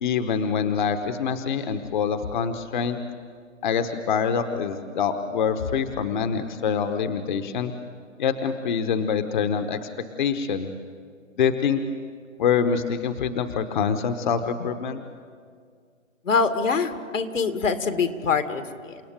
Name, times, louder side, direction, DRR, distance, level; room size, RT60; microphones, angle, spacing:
voice 1, 0.0-3.0 3.6-7.7 8.2-9.9 10.2-10.7 11.4-11.8 12.4-15.0, left 6 dB, 40° left, 8 dB, 1.2 m, -25 dB
voice 2, 16.2-19.0, left 5 dB, 75° left, 8 dB, 2.3 m, -24 dB
29.5 x 17.0 x 9.0 m, 2.1 s
hypercardioid pair, 150°, 39 cm